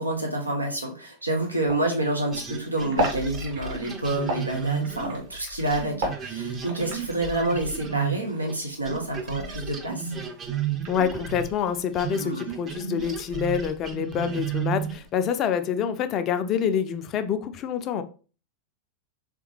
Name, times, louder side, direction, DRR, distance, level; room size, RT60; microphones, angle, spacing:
voice 1, 0.0-10.1 12.2-12.4, right 1 dB, 85° right, 0 dB, 0.8 m, -28 dB
sound 1, 1.2-9.9 10.1-12.4, right 1 dB, 50° right, 1.3 m, -35 dB
sound 2, 2.3-8.6 8.9-15.1, right 8 dB, 25° right, 0.6 m, -33 dB
voice 2, 10.9-18.0, left 8 dB, 35° left, 9 dB, 0.4 m, -26 dB
3.6 x 3.4 x 3.1 m, 0.36 s
figure-of-eight pair, 90°, 0 cm